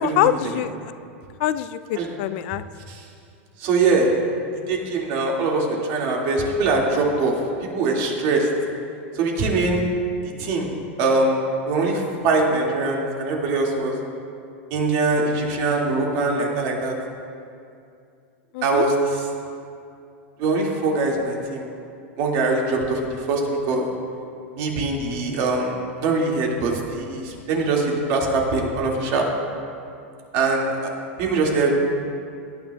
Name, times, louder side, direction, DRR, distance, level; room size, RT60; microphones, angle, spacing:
voice 1, 0.0-0.7 1.4-2.6 18.5-18.8, left 12 dB, 60° left, 13 dB, 0.3 m, -24 dB
voice 2, 3.6-4.1 4.7-7.4 7.6-8.5 9.1-9.8 10.2-10.7 11.0-11.4 11.7-13.9 14.7-16.9 18.6-19.3 20.4-21.7 22.2-23.4 23.7-23.9 24.6-25.8 26.0-29.3 30.3-30.9 31.2-31.7, right 3 dB, 55° right, -1 dB, 2.1 m, -22 dB
18.0 x 9.7 x 2.3 m, 2.5 s
hypercardioid pair, 115°, 7 cm